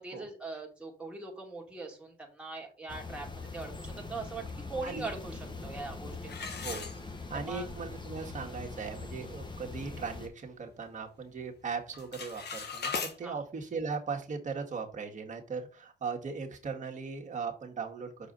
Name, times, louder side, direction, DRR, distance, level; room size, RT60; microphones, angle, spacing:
voice 1, 0.0-6.5 7.3-7.7 13.2-13.4, right 3 dB, 5° right, -1 dB, 2.3 m, -41 dB
sound 1, 2.9-10.3, left 3 dB, 25° left, 1.3 m, -42 dB
sound 2, 6.3-7.5 8.0-8.1 8.7-8.8 9.1-9.4 9.9-11.0 11.3-11.6 11.9-13.2, left 5 dB, 55° left, 1.5 m, -39 dB
voice 2, 6.6-18.1, right 5 dB, 40° right, 1 dB, 1.8 m, -38 dB
6.4 x 4.7 x 4.0 m, 0.36 s
cardioid pair, 90°, 20 cm